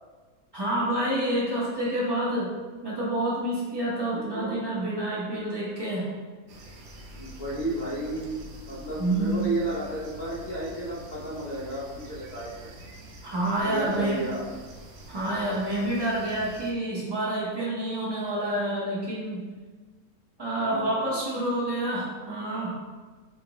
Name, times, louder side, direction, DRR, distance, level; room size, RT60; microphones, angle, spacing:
voice 1, 0.5-2.5 2.8-6.0 9.0-9.5 13.2-14.2 15.1-19.4 20.4-22.8, right 1 dB, 30° right, -7 dB, 0.5 m, -28 dB
voice 2, 3.9-4.6 7.1-12.7 13.6-14.5 20.6-21.2, right 1 dB, 50° left, -6 dB, 0.7 m, -33 dB
sound 1, 6.5-16.7, right 1 dB, 75° right, 0.6 m, -46 dB
4.3 x 2.4 x 2.9 m, 1.4 s
omnidirectional pair, 1.7 m